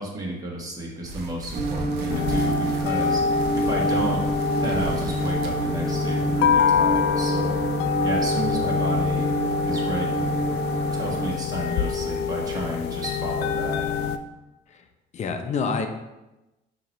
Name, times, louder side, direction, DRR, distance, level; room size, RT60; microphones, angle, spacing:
voice 1, 0.0-3.3 3.5-4.2 4.6-7.7 8.0-9.3 9.6-10.3 10.9-14.1, right 1 dB, 20° right, -2 dB, 1.4 m, -32 dB
sound 1, 1.0-6.8 7.2-7.4 8.0-8.1 8.5-8.6, right 2 dB, 80° right, 0.9 m, -37 dB
sound 2, 1.5-11.3, right 2 dB, 55° right, 0.9 m, -28 dB
sound 3, 2.1-14.2, left 6 dB, 85° left, 0.4 m, -25 dB
voice 2, 15.1-15.9, left 5 dB, 45° left, 5 dB, 0.7 m, -27 dB
5.8 x 3.0 x 5.4 m, 1.0 s
cardioid pair, 110°, 17 cm